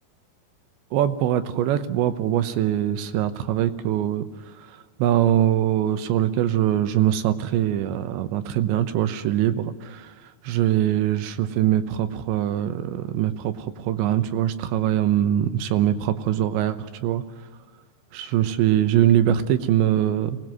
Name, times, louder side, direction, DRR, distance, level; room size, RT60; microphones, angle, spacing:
voice 1, 0.9-4.3 5.0-10.1 10.4-17.2 18.1-20.4, right 11 dB, 80° right, 11 dB, 3.2 m, -22 dB
24.5 x 19.0 x 9.6 m, 1.3 s
omnidirectional pair, 5.4 m